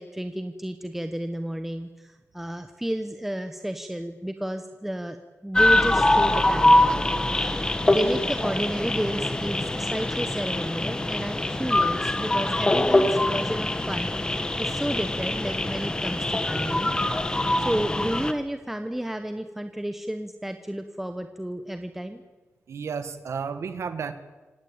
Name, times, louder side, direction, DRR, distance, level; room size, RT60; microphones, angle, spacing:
voice 1, 0.0-5.2 5.4-16.9 17.2-22.2, right 1 dB, 5° right, 7 dB, 1.0 m, -32 dB
sound 1, 5.5-18.3, left 1 dB, 15° left, 1.6 m, -23 dB
voice 2, 22.7-24.1, right 6 dB, 75° right, 11 dB, 1.6 m, -32 dB
26.5 x 17.5 x 8.8 m, 1.3 s
wide cardioid pair, 160°, 5 cm